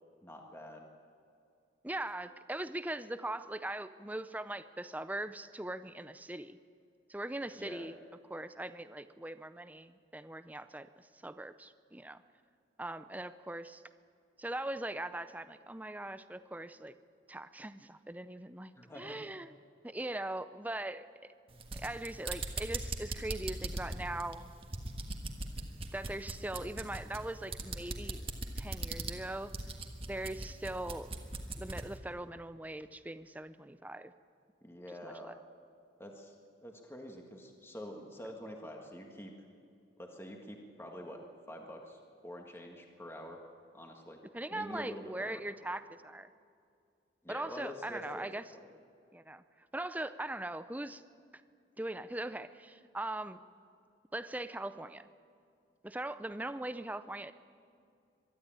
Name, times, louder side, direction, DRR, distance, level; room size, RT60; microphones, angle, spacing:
voice 1, 0.2-0.9 7.5-7.9 18.7-19.2 34.6-35.4 36.0-36.3 36.6-39.3 40.0-41.2 41.5-43.4 43.7-44.2 44.5-45.4 47.2-48.3, equal, 15° left, 1 dB, 1.6 m, -46 dB
voice 2, 1.8-6.6 7.1-8.0 8.3-12.2 12.8-13.8 14.4-16.9 17.3-19.5 19.8-21.1 21.7-24.5 25.9-28.2 28.5-29.5 30.1-31.1 31.6-34.1 35.0-35.3 44.3-46.3 47.3-48.4 49.1-49.4 49.7-51.0 51.8-53.4 54.1-55.1 55.8-57.3, right 1 dB, 10° right, 12 dB, 0.5 m, -40 dB
sound 1, 21.5-31.9, right 2 dB, 30° right, 1.5 m, -40 dB
23.0 x 12.5 x 8.9 m, 2.4 s
head